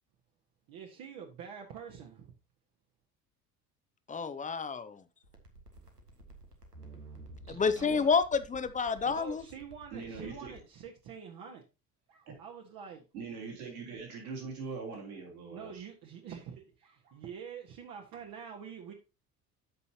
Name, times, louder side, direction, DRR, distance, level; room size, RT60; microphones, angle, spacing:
voice 1, 0.7-2.3 9.1-11.6 12.1-13.0 15.5-18.9, right 7 dB, 50° right, 1.5 m, -46 dB
voice 2, 4.1-5.0 7.5-9.4, left 5 dB, 15° left, 0.7 m, -29 dB
sound 1, 5.2-10.6, right 2 dB, 85° right, 1.4 m, -52 dB
voice 3, 7.5-8.1 9.9-10.5 13.1-15.8, right 4 dB, 70° right, 3.6 m, -42 dB
13.5 x 5.5 x 2.8 m
figure-of-eight pair, 60°, 46 cm